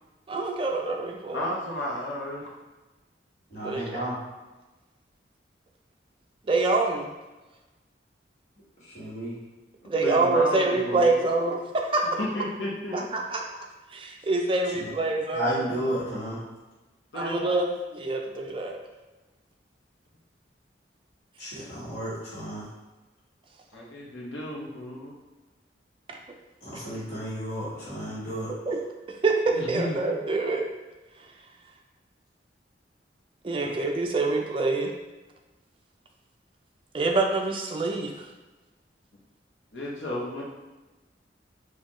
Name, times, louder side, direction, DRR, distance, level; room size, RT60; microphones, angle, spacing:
voice 1, 0.3-1.5 3.6-4.0 6.5-7.1 9.8-11.6 11.9-12.0 12.9-13.4 13.9-15.6 17.1-17.7 17.9-18.7 26.1-26.2 26.7-26.8 28.7-28.8 29.2-29.3 29.7-30.6 33.4-34.9 36.9-38.3, right 3 dB, 30° right, 1 dB, 0.4 m, -26 dB
voice 2, 1.3-2.5 9.9-11.2 12.2-13.1 17.1-17.6 23.7-25.1 29.5-30.0 39.7-40.4, left 1 dB, 90° left, -3 dB, 0.9 m, -33 dB
voice 3, 3.5-4.2 8.8-9.4 14.8-14.9 15.3-16.4 21.4-22.6 26.6-28.5 33.6-33.7, equal, 45° left, -10 dB, 1.3 m, -32 dB
4.3 x 2.3 x 2.9 m, 1.1 s
head